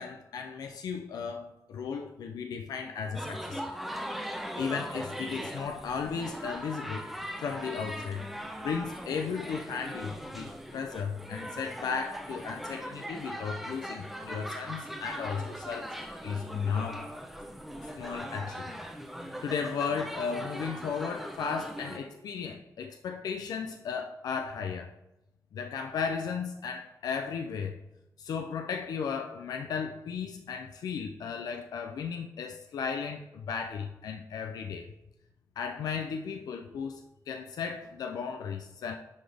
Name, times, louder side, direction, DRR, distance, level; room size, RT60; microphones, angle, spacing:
voice 1, 0.0-3.6 4.6-7.0 7.4-8.3 8.6-15.9 16.2-17.1 18.0-18.8 19.4-24.9 25.5-27.8 28.2-34.8 35.6-38.9, left 6 dB, 85° left, 4 dB, 0.4 m, -35 dB
sound 1, 3.1-22.0, equal, 5° right, 0.7 m, -40 dB
10.0 x 4.0 x 3.4 m, 0.94 s
wide cardioid pair, 115°, 6 cm